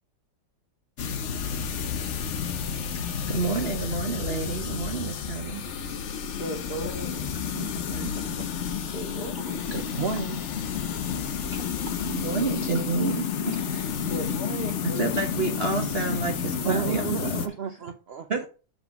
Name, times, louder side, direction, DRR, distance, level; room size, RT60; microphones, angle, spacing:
sound 1, 1.0-17.5, left 7 dB, 55° left, 0.8 m, -30 dB
voice 1, 3.3-5.6 7.5-8.2 12.1-13.3 15.0-17.0 18.3-18.5, right 4 dB, 40° right, 3 dB, 1.2 m, -29 dB
voice 2, 6.4-7.5 8.9-9.8 13.0-13.1 13.4-13.8 14.1-15.2, equal, 25° left, 1 dB, 1.8 m, -36 dB
voice 3, 9.7-10.4 11.0-11.2 11.5-11.9 13.5-13.6 16.6-18.3, right 7 dB, 60° right, 6 dB, 0.6 m, -32 dB
8.0 x 3.8 x 5.8 m, 0.34 s
omnidirectional pair, 1.9 m